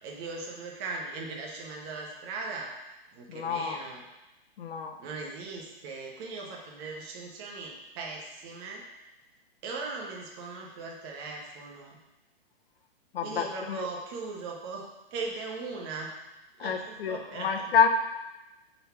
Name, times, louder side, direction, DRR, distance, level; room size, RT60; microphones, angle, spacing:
voice 1, 0.0-2.7 3.1-4.0 5.0-8.8 9.6-12.0 13.2-14.8 15.1-16.2 16.6-17.9, right 3 dB, 25° right, -1 dB, 0.8 m, -39 dB
voice 2, 3.3-3.8 4.6-4.9 13.1-13.9 16.6-17.9, left 6 dB, 70° left, 5 dB, 0.9 m, -28 dB
4.5 x 4.0 x 5.7 m, 0.99 s
hypercardioid pair, 160°, 30 cm